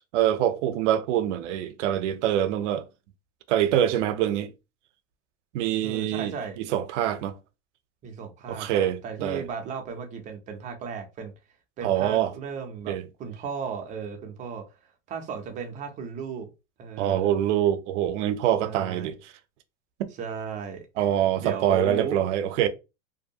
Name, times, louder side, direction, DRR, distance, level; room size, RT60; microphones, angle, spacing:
voice 1, 0.1-2.9 3.5-4.5 5.5-7.3 8.5-9.4 11.8-12.3 12.9-13.0 17.0-19.3 21.0-22.7, right 11 dB, 70° right, 0.6 m, -25 dB
voice 2, 5.8-6.6 8.0-11.3 11.8-14.8 15.1-16.5 16.8-17.4 18.6-19.1 20.2-21.1 21.4-22.2, right 6 dB, 20° right, 0.4 m, -35 dB
2.6 x 2.2 x 2.6 m
supercardioid pair, 140°, 37 cm